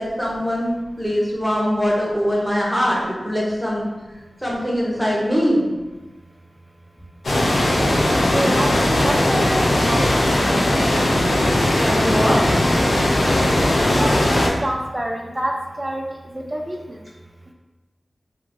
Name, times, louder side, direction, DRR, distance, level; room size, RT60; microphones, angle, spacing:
voice 1, 0.0-3.9 4.4-5.7 11.8-12.6, equal, 5° left, -4 dB, 0.7 m, -22 dB
sound 1, 7.2-14.5, left 1 dB, 75° left, 0.4 m, -18 dB
voice 2, 8.3-8.7 9.0-10.3 13.6-16.0 16.3-17.0, right 1 dB, 20° right, 0 dB, 0.3 m, -27 dB
3.0 x 2.5 x 2.5 m, 1.1 s
wide cardioid pair, 90°, 0 cm